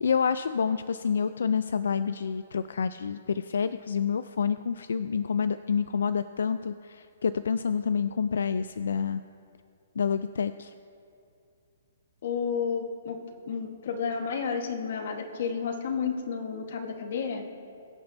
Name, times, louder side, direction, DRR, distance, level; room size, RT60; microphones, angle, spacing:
voice 1, 0.0-9.2 10.0-10.7, left 6 dB, 80° left, 12 dB, 0.3 m, -28 dB
voice 2, 12.2-17.4, left 6 dB, 45° left, 5 dB, 1.3 m, -31 dB
23.0 x 8.6 x 2.7 m, 2.5 s
hypercardioid pair, 175°, 0 cm